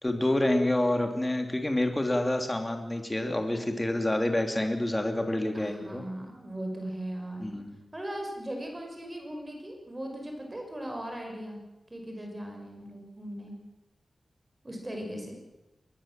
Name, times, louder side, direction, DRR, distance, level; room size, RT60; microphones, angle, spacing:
voice 1, 0.0-6.0 7.4-7.7, left 1 dB, 15° left, 5 dB, 2.8 m, -28 dB
voice 2, 5.5-7.5 7.9-11.6 11.9-13.5 14.6-15.4, right 1 dB, 20° right, 2 dB, 5.5 m, -38 dB
23.5 x 20.5 x 7.5 m, 1.0 s
wide cardioid pair, 135°, 0 cm